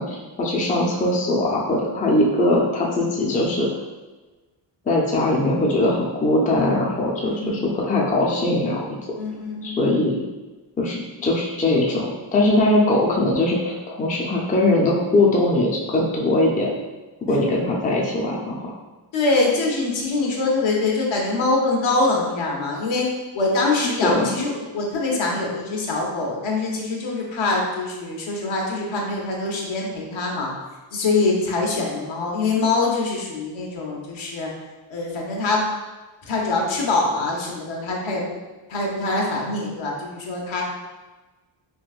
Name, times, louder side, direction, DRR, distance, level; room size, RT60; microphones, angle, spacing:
voice 1, 0.0-3.7 4.9-9.0 9.6-10.2 10.8-16.7 17.2-18.7 24.0-24.3, left 1 dB, 20° left, -3 dB, 0.4 m, -21 dB
voice 2, 7.2-7.7 9.2-10.2 17.3-17.4 19.1-23.1 23.3-30.5 30.9-34.5 34.9-35.6 36.3-38.2 38.7-40.6, left 3 dB, 70° left, -2 dB, 0.9 m, -24 dB
3.7 x 2.6 x 2.4 m, 1.2 s
wide cardioid pair, 125°, 48 cm